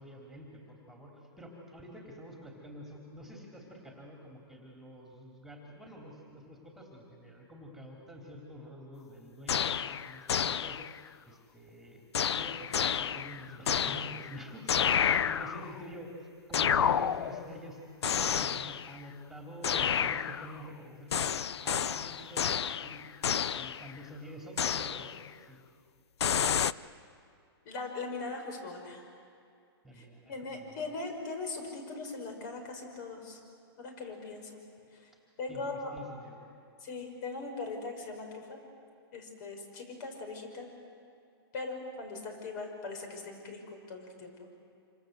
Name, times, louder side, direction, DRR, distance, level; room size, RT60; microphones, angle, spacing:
voice 1, 0.0-10.8 11.2-12.0 12.3-16.1 16.5-17.8 18.2-23.1 23.5-25.6 29.8-30.9 35.5-36.4, equal, ahead, 0 dB, 3.3 m, -48 dB
sound 1, 9.5-11.1 12.1-14.4 14.7-15.8 16.5-17.6 18.0-19.0 19.6-20.7 21.1-23.9 24.6-25.3 26.2-26.7, left 8 dB, 85° left, 0.6 m, -30 dB
voice 2, 27.6-29.0 29.9-33.4 33.8-34.5 34.9-35.1 35.4-35.9 36.8-38.6 39.1-40.7 41.5-44.5, left 3 dB, 45° left, 4 dB, 6.3 m, -40 dB
27.0 x 26.5 x 8.1 m, 2.4 s
hypercardioid pair, 145°, 14 cm